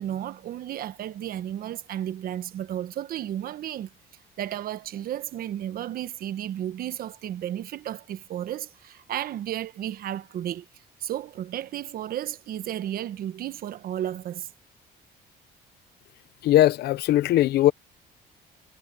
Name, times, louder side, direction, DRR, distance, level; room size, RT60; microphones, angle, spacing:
voice 1, 0.0-3.9 4.4-10.6 11.0-14.5, right 11 dB, 60° right, 1.2 m, -33 dB
voice 2, 16.4-17.7, left 14 dB, 70° left, 0.8 m, -19 dB
cardioid pair, 110°, 17 cm